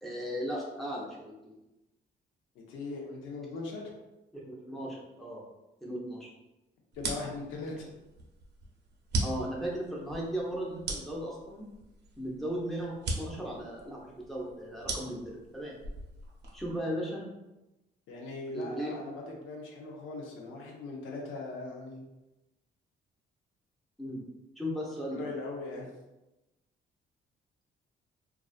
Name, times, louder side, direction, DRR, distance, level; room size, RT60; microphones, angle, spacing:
voice 1, 0.0-1.5 4.3-5.4 5.8-6.3 9.2-11.7 12.2-15.8 16.5-17.2 18.5-18.9 24.0-24.2 24.6-25.2, equal, ahead, -4 dB, 0.6 m, -36 dB
voice 2, 2.7-3.9 6.9-7.9 18.1-22.0 25.1-25.9, left 3 dB, 90° left, 0 dB, 0.6 m, -40 dB
sound 1, 6.9-16.8, right 2 dB, 55° right, 0.6 m, -39 dB
2.4 x 2.3 x 2.4 m, 1.0 s
cardioid pair, 90°, 20 cm